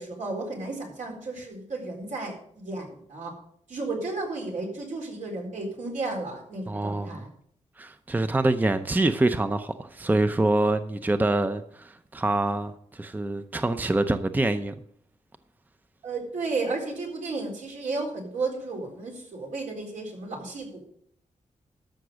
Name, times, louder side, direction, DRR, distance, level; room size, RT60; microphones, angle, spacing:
voice 1, 0.0-3.3 3.7-7.3 16.0-20.8, right 3 dB, 75° right, 4.0 m, -33 dB
voice 2, 6.7-7.3 7.8-14.7, right 2 dB, 15° right, 0.6 m, -25 dB
13.0 x 5.9 x 6.3 m
cardioid pair, 90°, 13 cm